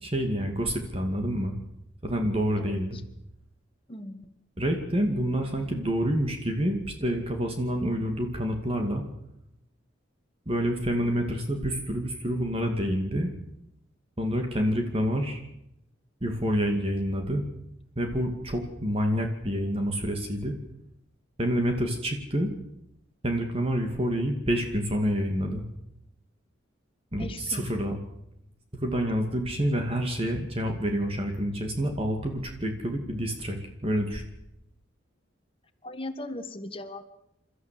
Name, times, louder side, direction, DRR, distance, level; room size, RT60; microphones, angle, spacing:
voice 1, 0.0-1.6 2.0-3.0 4.6-9.0 10.5-13.3 14.2-15.4 16.2-17.4 18.0-20.5 21.4-22.5 23.2-25.6 27.1-28.0 28.8-34.2, equal, 30° right, 4 dB, 2.4 m, -28 dB
voice 2, 3.9-4.3 27.2-27.7 35.8-37.0, left 1 dB, 30° left, 8 dB, 1.6 m, -38 dB
29.0 x 13.5 x 7.7 m, 0.83 s
head